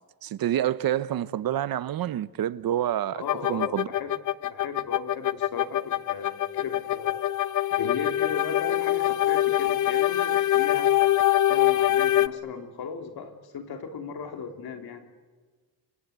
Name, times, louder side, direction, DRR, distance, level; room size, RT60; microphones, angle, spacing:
voice 1, 0.2-3.2 3.5-3.9, right 11 dB, 60° right, 0.8 m, -27 dB
voice 2, 3.1-4.1 4.4-7.3 7.7-11.1 11.5-15.1, left 5 dB, 70° left, 3.1 m, -37 dB
sound 1, 3.3-12.3, left 13 dB, 50° left, 0.8 m, -24 dB
29.5 x 25.0 x 8.1 m
wide cardioid pair, 165°, 39 cm